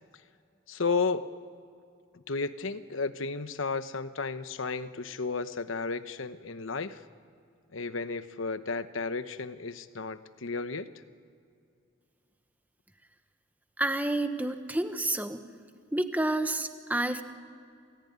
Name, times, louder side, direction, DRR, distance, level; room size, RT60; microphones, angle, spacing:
voice 1, 0.7-1.3 2.1-7.0 7.7-10.9, left 4 dB, 75° left, 12 dB, 1.0 m, -33 dB
voice 2, 13.8-15.4 15.9-17.2, right 1 dB, 10° right, 8 dB, 1.1 m, -29 dB
28.0 x 19.0 x 9.5 m, 2.5 s
head